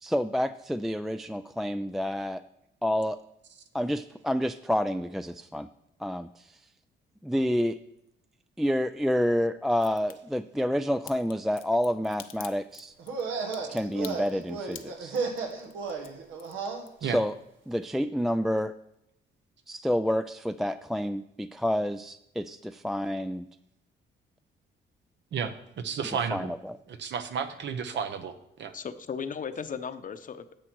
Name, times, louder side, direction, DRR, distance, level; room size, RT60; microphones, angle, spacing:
voice 1, 0.0-2.4 2.8-3.2 3.7-5.7 6.0-6.6 7.2-7.8 8.6-12.9 13.7-15.2 17.0-17.3 17.7-18.7 19.7-23.5 26.3-26.8, equal, ahead, 11 dB, 0.3 m, -29 dB
Crack, 9.7-10.1 11.1-17.3 17.6-18.3 18.6-18.7, left 11 dB, 80° left, 0.8 m, -47 dB
sound 1, 13.0-16.8, right 5 dB, 85° right, 1.6 m, -34 dB
voice 2, 25.3-26.5 26.9-28.7, right 6 dB, 65° right, 9 dB, 1.1 m, -32 dB
voice 3, 28.7-30.6, left 6 dB, 40° left, 10 dB, 0.8 m, -36 dB
9.9 x 7.5 x 4.6 m, 0.80 s
cardioid pair, 90°, 20 cm